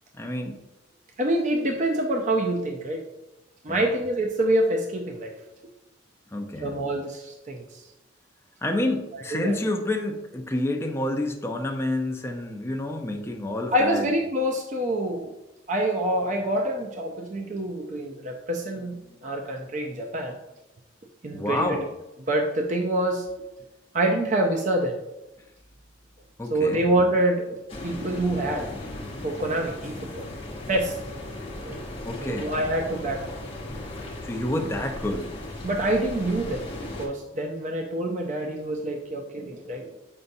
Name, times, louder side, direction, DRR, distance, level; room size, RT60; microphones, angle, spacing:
voice 1, 0.2-0.6 3.7-3.9 6.3-6.8 8.6-14.1 21.3-21.8 26.4-26.8 32.0-32.5 34.2-35.3, left 1 dB, 10° left, 2 dB, 0.5 m, -28 dB
voice 2, 1.2-3.0 3.6-5.3 6.6-7.8 9.3-9.6 13.7-15.3 15.7-20.4 21.2-21.8 22.3-23.3 23.9-25.0 26.5-28.7 29.2-30.3 30.7-31.0 31.6-31.8 32.2-33.4 35.6-36.7 37.0-40.0, right 1 dB, 35° right, 2 dB, 0.5 m, -26 dB
sound 1, 27.7-37.1, left 1 dB, 30° left, 1.0 m, -37 dB
6.8 x 5.3 x 2.6 m, 0.97 s
head